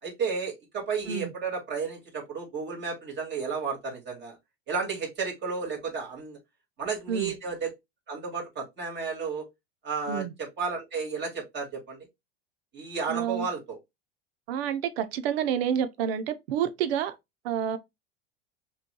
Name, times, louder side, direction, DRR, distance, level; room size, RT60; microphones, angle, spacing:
voice 1, 0.0-4.4 4.7-6.4 6.8-7.7 8.1-9.5 9.8-12.1 12.7-13.8, right 5 dB, 35° right, 2.2 m, -32 dB
voice 2, 13.1-13.5 14.5-17.1 17.4-17.8, right 9 dB, 75° right, 0.8 m, -29 dB
5.7 x 3.2 x 2.2 m
supercardioid pair, 105°, 31 cm